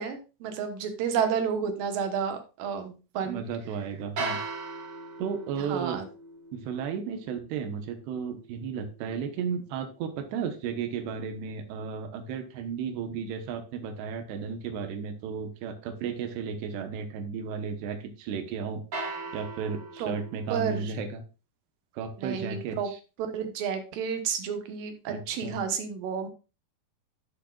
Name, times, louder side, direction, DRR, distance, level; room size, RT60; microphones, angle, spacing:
voice 1, 0.0-3.4 5.6-6.1 20.0-20.1 20.5-20.9 22.2-22.9 23.3-26.3, right 7 dB, 65° right, 6 dB, 2.7 m, -31 dB
voice 2, 3.2-4.4 5.2-6.0 6.5-18.8 19.3-21.2 21.9-23.0 25.1-25.6, right 6 dB, 85° right, 6 dB, 3.3 m, -34 dB
sound 1, 4.2-10.3 18.9-20.8, right 3 dB, 50° right, 2.5 m, -40 dB
13.5 x 6.4 x 2.4 m, 0.31 s
omnidirectional pair, 4.7 m